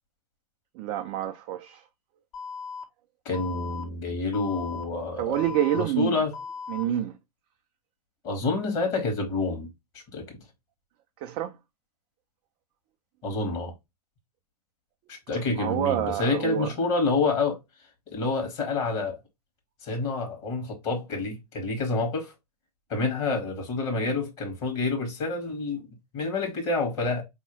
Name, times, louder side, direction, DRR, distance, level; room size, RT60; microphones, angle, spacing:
voice 1, 0.7-1.8 5.2-6.2 6.7-7.2 11.2-11.6 15.6-16.7, right 11 dB, 25° right, 0.3 m, -28 dB
Alarm, 2.3-2.8 3.3-3.8 4.3-4.8 5.3-5.8 6.3-6.8, left 5 dB, 60° left, 1.3 m, -37 dB
voice 2, 3.2-5.4 5.7-6.3 8.2-9.7 9.9-10.3 13.2-13.7 15.1-17.6 18.1-19.2 19.8-22.3 22.9-25.9 26.1-27.2, left 3 dB, 35° left, 1.4 m, -28 dB
4.5 x 2.8 x 2.9 m
figure-of-eight pair, 110°, 21 cm